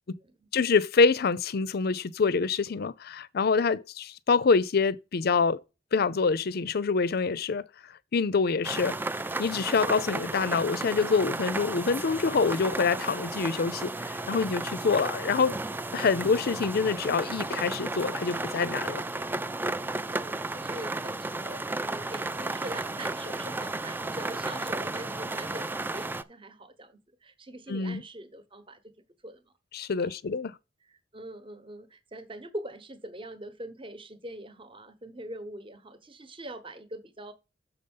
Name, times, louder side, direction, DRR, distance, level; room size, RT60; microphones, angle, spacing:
voice 1, 0.5-5.6 5.9-7.6 8.1-15.6 15.9-19.0 27.7-28.0 29.7-30.6, left 4 dB, 55° left, 0.5 m, -26 dB
sound 1, 8.6-26.2, right 2 dB, 10° right, 0.3 m, -33 dB
voice 2, 20.1-28.9 29.2-29.4 29.9-30.1 31.1-37.3, right 1 dB, 30° right, 1.0 m, -42 dB
7.1 x 5.4 x 5.4 m
head